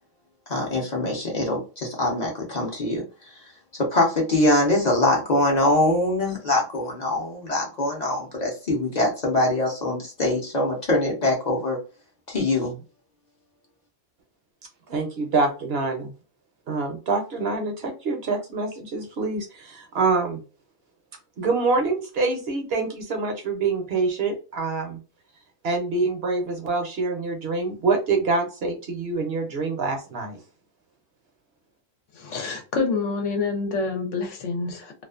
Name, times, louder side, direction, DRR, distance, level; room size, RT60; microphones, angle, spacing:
voice 1, 0.5-3.4 3.9-11.8 12.3-12.7, left 1 dB, 45° left, -1 dB, 0.6 m, -23 dB
voice 2, 14.9-16.1 16.7-20.4 21.4-25.0 25.6-30.4, right 3 dB, 60° right, 3 dB, 0.8 m, -25 dB
voice 3, 32.2-35.0, left 4 dB, 75° left, 4 dB, 1.0 m, -27 dB
2.4 x 2.3 x 2.3 m, 0.34 s
omnidirectional pair, 1.3 m